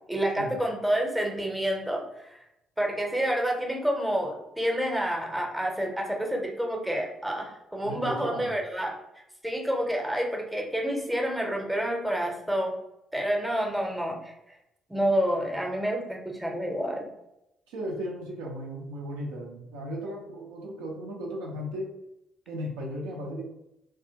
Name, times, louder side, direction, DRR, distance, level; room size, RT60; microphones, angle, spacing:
voice 1, 0.1-2.4 2.8-9.0 9.4-12.7 13.1-14.3 14.9-17.1, equal, 10° right, 1 dB, 0.7 m, -28 dB
voice 2, 7.8-8.5 17.7-21.9 22.5-23.4, equal, 75° right, -2 dB, 0.5 m, -36 dB
2.4 x 2.2 x 2.8 m, 0.85 s
hypercardioid pair, 45°, 0 cm